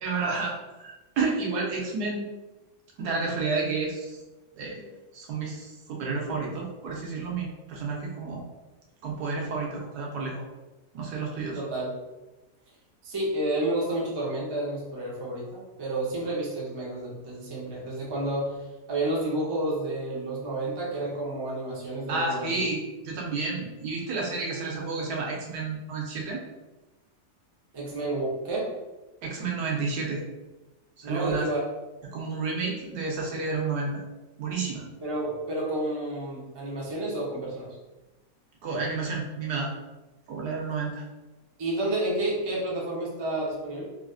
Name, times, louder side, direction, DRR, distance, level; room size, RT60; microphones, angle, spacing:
voice 1, 0.0-2.2 3.0-4.2 4.6-8.4 9.0-10.4 10.9-11.6 22.1-26.4 29.2-30.2 31.0-31.5 32.0-34.0 34.4-34.9 38.6-39.7 40.3-41.0, right 4 dB, 85° right, -1 dB, 1.3 m, -31 dB
voice 2, 11.6-11.9 13.0-18.6 18.9-22.5 27.7-28.7 31.0-31.6 35.0-37.8 41.6-43.8, right 1 dB, 40° right, -5 dB, 0.3 m, -30 dB
3.2 x 2.5 x 2.3 m, 1.1 s
omnidirectional pair, 1.7 m